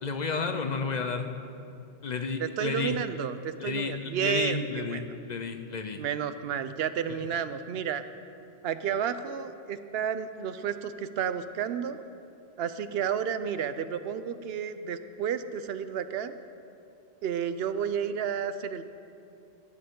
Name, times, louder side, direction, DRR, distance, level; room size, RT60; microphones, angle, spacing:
voice 1, 0.0-1.4 2.0-3.0 3.6-6.0 7.1-7.2, left 4 dB, 50° left, 7 dB, 0.7 m, -32 dB
voice 2, 2.4-5.0 6.0-8.0 8.6-12.0 12.6-16.3 17.2-18.8, right 8 dB, 75° right, 12 dB, 0.8 m, -31 dB
17.0 x 9.2 x 3.7 m, 2.6 s
omnidirectional pair, 1.0 m